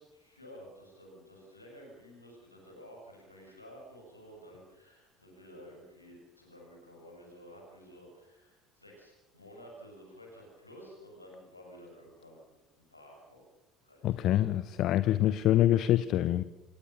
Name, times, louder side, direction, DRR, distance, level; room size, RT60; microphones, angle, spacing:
voice 1, 0.0-13.4 13.8-14.5, equal, 90° left, -1 dB, 6.3 m, -52 dB
voice 2, 14.0-16.4, left 13 dB, 50° left, 16 dB, 0.7 m, -25 dB
28.0 x 17.0 x 6.9 m, 0.98 s
figure-of-eight pair, 60°, 0 cm